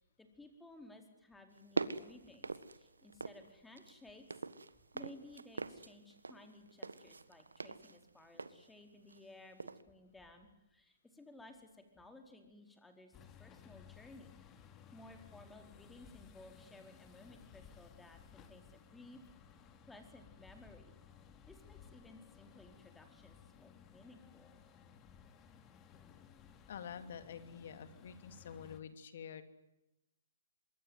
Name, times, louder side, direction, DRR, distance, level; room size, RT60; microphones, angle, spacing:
voice 1, 0.0-4.4 4.7-14.4 14.9-19.2 19.9-20.9 21.5-24.5, left 2 dB, 5° left, 5 dB, 4.5 m, -57 dB
sound 1, 1.5-3.5 3.8-9.3 9.6-9.8, right 3 dB, 85° right, 1.6 m, -43 dB
sound 2, 13.1-28.8, left 7 dB, 25° left, 2.9 m, -59 dB
voice 2, 26.7-29.4, left 7 dB, 60° left, 10 dB, 3.0 m, -48 dB
25.5 x 22.5 x 9.5 m, 0.94 s
hypercardioid pair, 130°, 0 cm